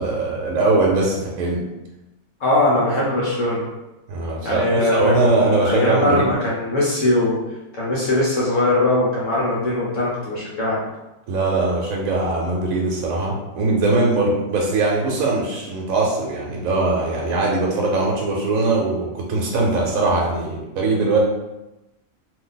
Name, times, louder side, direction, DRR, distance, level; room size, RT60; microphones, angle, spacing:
voice 1, 0.0-1.6 4.1-6.3 11.3-21.2, right 3 dB, 70° right, -2 dB, 1.0 m, -21 dB
voice 2, 2.4-3.6 4.4-7.4 7.7-10.8, left 1 dB, 60° left, -6 dB, 1.2 m, -20 dB
2.7 x 2.6 x 3.9 m, 0.99 s
omnidirectional pair, 1.5 m